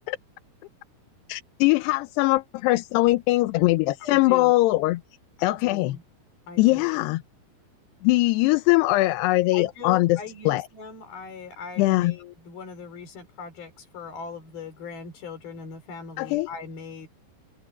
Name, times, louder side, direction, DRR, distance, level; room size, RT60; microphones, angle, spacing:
voice 1, 1.3-5.0 5.4-6.0 6.6-7.2 8.0-10.2 10.5-10.7 11.8-12.2 16.2-16.5, left 19 dB, 80° left, 2.8 m, -21 dB
voice 2, 4.0-4.6 5.4-6.0 6.5-7.0 9.5-17.1, left 6 dB, 60° left, 6.3 m, -39 dB
open air
omnidirectional pair, 4.9 m